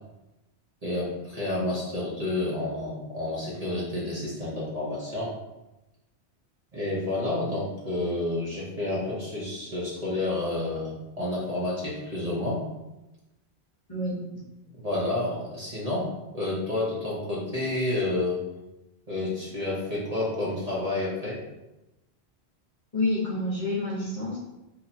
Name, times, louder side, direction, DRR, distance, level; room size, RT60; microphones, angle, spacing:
voice 1, 0.8-5.4 6.7-12.6 14.7-16.1 16.3-18.4 19.1-21.4, left 2 dB, 35° right, -6 dB, 1.0 m, -30 dB
voice 2, 22.9-24.4, left 2 dB, 35° left, -6 dB, 0.9 m, -28 dB
3.0 x 2.9 x 4.1 m, 0.99 s
omnidirectional pair, 1.1 m